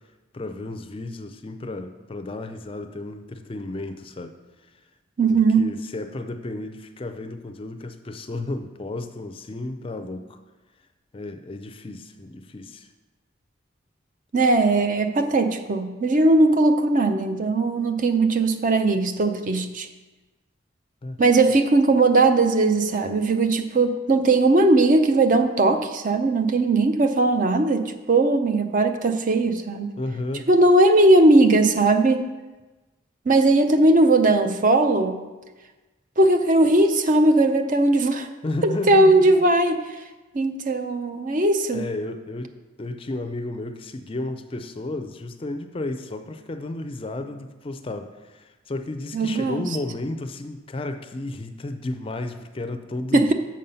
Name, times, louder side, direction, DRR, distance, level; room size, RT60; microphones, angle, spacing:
voice 1, 0.3-4.4 5.3-10.4 11.1-12.9 21.0-21.2 21.4-21.6 30.0-30.5 38.4-39.5 41.7-53.3, left 2 dB, 30° left, 8 dB, 0.4 m, -33 dB
voice 2, 5.2-5.6 14.3-19.9 21.2-29.9 30.5-32.3 33.3-35.2 36.2-38.3 38.6-39.8 40.3-41.8 49.1-49.6 53.1-53.3, right 2 dB, 40° right, 7 dB, 0.5 m, -19 dB
7.5 x 5.4 x 5.5 m, 1.2 s
head